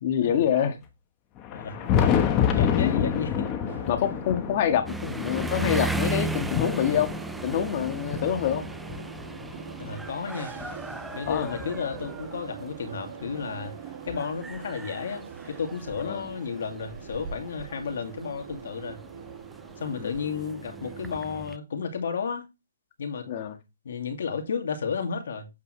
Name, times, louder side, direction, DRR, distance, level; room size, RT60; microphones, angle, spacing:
voice 1, 0.0-0.8 2.7-3.2 3.9-7.1 7.4-8.6 11.3-11.5 16.0-16.2 19.9-20.1 23.3-23.6, left 9 dB, 40° left, 1.7 m, -26 dB
Thunder, 1.4-9.9 10.6-12.3 13.4-13.5 14.1-14.2 16.1-16.2 17.5-17.6 19.2-19.3, left 8 dB, 25° left, 1.2 m, -29 dB
sound 1, 1.8-21.5, right 7 dB, 50° right, 1.7 m, -43 dB
voice 2, 2.5-3.5 9.8-10.5 11.1-13.7 14.0-19.0 19.8-22.5 23.0-23.3 23.8-25.5, left 6 dB, 65° left, 2.4 m, -32 dB
sound 2, 4.9-21.6, right 2 dB, 5° right, 0.4 m, -37 dB
8.7 x 6.8 x 3.3 m
hypercardioid pair, 150°, 0 cm